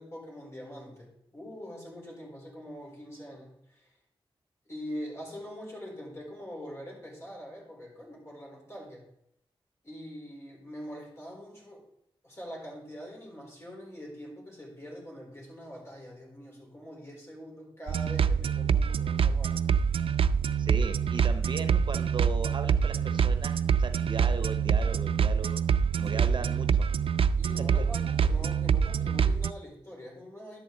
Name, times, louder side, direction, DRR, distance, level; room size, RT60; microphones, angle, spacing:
voice 1, 0.0-3.9 4.7-9.1 9.8-11.9 12.2-19.7 26.0-26.5 27.4-30.6, equal, 30° left, -2 dB, 4.1 m, -44 dB
sound 1, 17.9-29.5, right 7 dB, 75° right, 0.4 m, -26 dB
voice 2, 20.6-25.6 26.0-26.9 27.8-27.9, right 4 dB, 55° right, 9 dB, 0.8 m, -37 dB
11.0 x 8.3 x 3.9 m, 0.76 s
wide cardioid pair, 100°, 10 cm